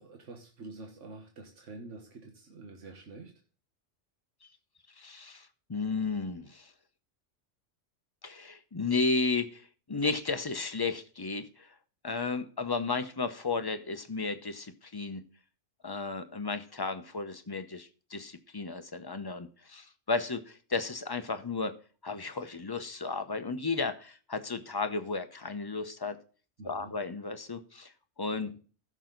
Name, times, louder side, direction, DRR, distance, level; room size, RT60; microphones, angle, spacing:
voice 1, 0.0-3.3 26.6-26.9 28.4-28.5, right 3 dB, 80° right, 3 dB, 1.7 m, -47 dB
voice 2, 5.0-6.7 8.2-9.6 9.9-11.7 12.0-15.2 15.8-21.7 22.0-26.2 26.6-27.9 28.2-28.5, left 4 dB, 25° left, 9 dB, 0.7 m, -33 dB
15.0 x 6.2 x 3.9 m, 0.39 s
omnidirectional pair, 1.2 m